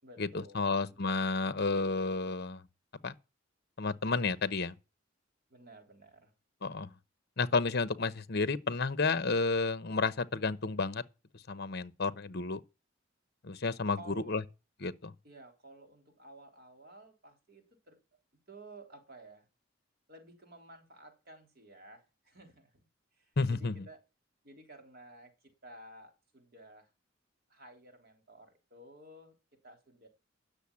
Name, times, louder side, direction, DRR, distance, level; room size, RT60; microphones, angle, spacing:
voice 1, 0.0-1.0 5.5-6.3 13.9-14.4 15.2-18.0 18.5-19.5 20.1-22.9 23.2-24.0 24.4-26.9 27.5-29.3 29.6-30.1, right 1 dB, 55° right, 3.5 m, -54 dB
voice 2, 0.5-2.6 3.0-3.1 3.8-4.7 6.6-6.9 7.4-11.0 11.5-12.6 13.4-14.0 14.3-14.4 14.8-15.1 23.4-23.7, left 4 dB, 55° left, 0.9 m, -31 dB
10.0 x 6.8 x 8.5 m
head